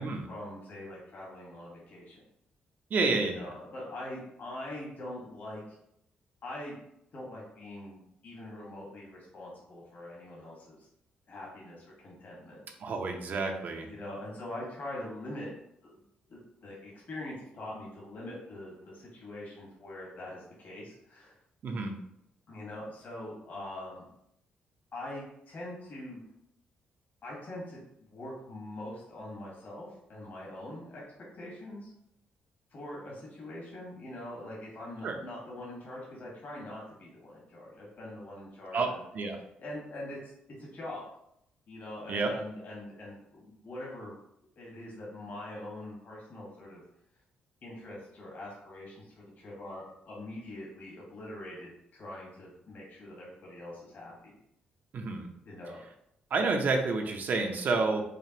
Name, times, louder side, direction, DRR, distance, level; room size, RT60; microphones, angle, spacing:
voice 1, 0.0-2.2 3.2-5.8 6.4-6.8 7.1-10.9 11.3-12.6 13.9-15.5 15.8-15.9 16.3-21.3 22.5-24.0 24.9-26.2 27.2-31.0 31.3-31.9 32.7-39.0 39.6-40.2 40.6-41.0 41.7-44.1 44.6-46.8 47.6-54.3 55.4-55.8, left 1 dB, 55° left, -4 dB, 1.5 m, -43 dB
voice 2, 2.9-3.5 12.8-13.9 21.6-21.9 35.0-35.2 38.7-39.4 42.1-42.3 54.9-55.3 56.3-58.0, right 3 dB, 55° right, 4 dB, 0.7 m, -29 dB
5.0 x 2.4 x 2.9 m, 0.77 s
cardioid pair, 75°, 4 cm